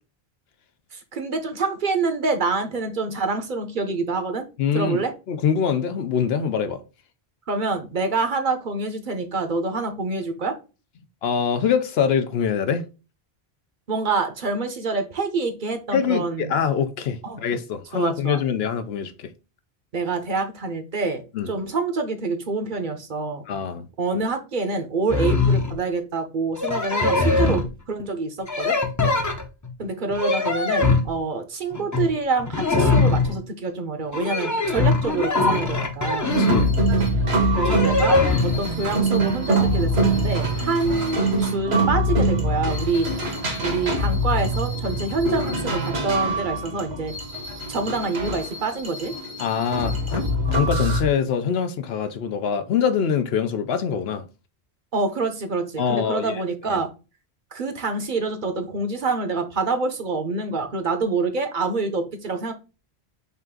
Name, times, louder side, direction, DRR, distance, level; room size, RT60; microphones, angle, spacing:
voice 1, 0.9-4.5 4.7-5.1 7.5-10.6 13.9-16.6 17.2-17.4 17.9-18.4 19.9-21.2 21.5-23.4 24.0-27.6 27.9-28.8 29.8-36.3 37.5-43.1 43.6-47.1 47.7-49.1 54.9-56.9 57.5-62.5, right 3 dB, 55° right, 0.9 m, -26 dB
voice 2, 4.6-5.0 5.3-6.8 11.2-12.8 15.9-16.2 16.5-19.3 21.3-21.5 23.5-23.8 29.0-29.2 36.4-36.7 49.4-54.2 55.8-56.4 56.7-56.8, left 7 dB, 75° left, 0.9 m, -24 dB
sound 1, 25.1-25.8 26.6-27.7 28.5-29.7 30.1-31.1 31.7-32.1 32.4-33.4 34.1-36.7 37.5-38.6, left 3 dB, 20° left, 0.6 m, -21 dB
sound 2, 36.3-51.0, right 1 dB, 80° right, 1.5 m, -24 dB
5.5 x 2.5 x 3.6 m
omnidirectional pair, 1.1 m